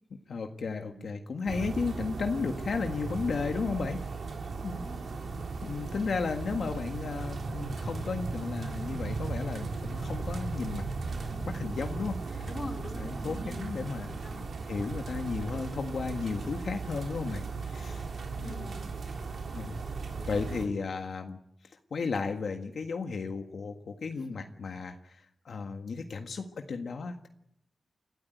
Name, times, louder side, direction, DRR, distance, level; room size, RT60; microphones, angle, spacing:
voice 1, 0.3-4.0 4.6-4.8 5.6-12.5 13.0-14.2 14.7-18.1 18.4-18.7 19.5-19.7 20.3-21.4 21.9-27.3, left 4 dB, 80° left, 5 dB, 1.6 m, -34 dB
sound 1, 1.5-20.7, right 4 dB, 80° right, 3.7 m, -37 dB
voice 2, 4.8-5.2 12.5-14.7 18.4-18.9 20.2-20.4 24.1-24.4, left 1 dB, 30° left, 4 dB, 4.4 m, -44 dB
29.5 x 13.5 x 9.2 m, 0.75 s
wide cardioid pair, 80°, 0 cm